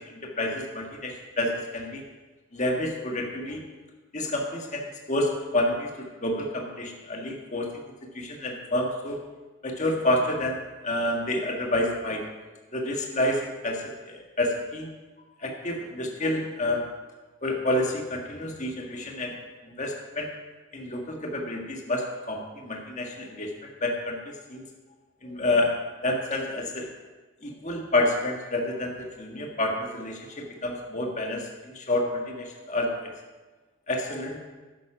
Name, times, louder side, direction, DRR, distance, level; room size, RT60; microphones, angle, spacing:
voice 1, 0.4-2.0 2.5-3.6 4.1-5.9 6.2-7.8 8.1-9.2 9.6-10.6 10.8-12.2 12.7-14.9 15.4-16.8 17.4-19.3 19.6-20.3 20.7-23.5 23.8-24.6 25.2-25.7 26.0-26.9 27.4-32.9 33.9-34.4, left 1 dB, 35° left, 1 dB, 1.6 m, -29 dB
12.0 x 9.7 x 5.0 m, 1.2 s
head